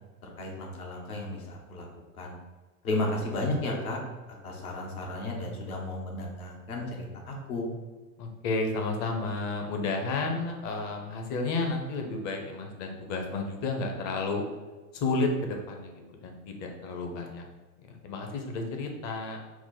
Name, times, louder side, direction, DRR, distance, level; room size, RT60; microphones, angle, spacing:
voice 1, 0.2-1.9 2.1-2.4 2.8-4.0 4.4-7.7, left 2 dB, 70° left, 0 dB, 1.1 m, -33 dB
voice 2, 8.2-14.4 14.9-17.4 17.9-19.4, left 3 dB, 40° left, 3 dB, 0.8 m, -32 dB
4.7 x 2.0 x 3.8 m, 1.3 s
hypercardioid pair, 95°, 45 cm